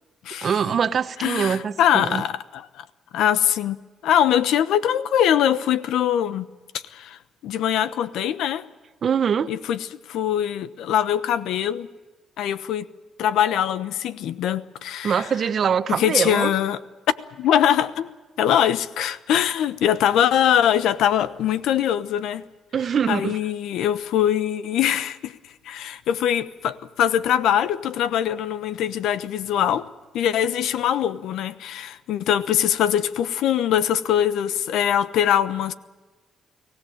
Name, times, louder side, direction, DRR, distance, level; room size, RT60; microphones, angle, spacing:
voice 1, 0.4-2.2 9.0-9.5 15.0-16.5 22.7-23.4, right 7 dB, 50° right, 1.0 m, -23 dB
voice 2, 1.2-2.8 3.1-3.8 4.0-6.5 6.7-8.7 9.5-9.8 10.1-11.9 12.4-12.9 13.2-15.2 16.0-16.8 17.4-18.1 18.4-22.4 23.1-25.3 25.6-29.9 30.1-35.7, left 10 dB, 80° left, 1.0 m, -22 dB
24.0 x 17.0 x 9.0 m
cardioid pair, 90°, 0 cm